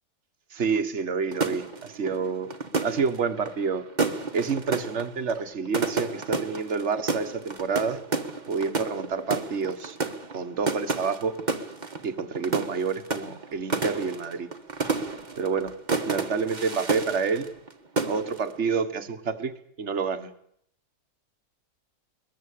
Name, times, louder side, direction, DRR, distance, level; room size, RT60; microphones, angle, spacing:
voice 1, 0.5-2.6 2.8-3.8 4.3-8.0 8.5-10.0 10.3-11.4 12.0-14.5 15.4-15.7 16.1-17.5 18.1-19.5 19.8-20.3, right 5 dB, 50° right, 8 dB, 1.8 m, -28 dB
sound 1, 1.3-17.7 18.0-18.5, right 4 dB, 30° right, 1.7 m, -31 dB
22.0 x 21.0 x 8.5 m, 0.71 s
omnidirectional pair, 1.6 m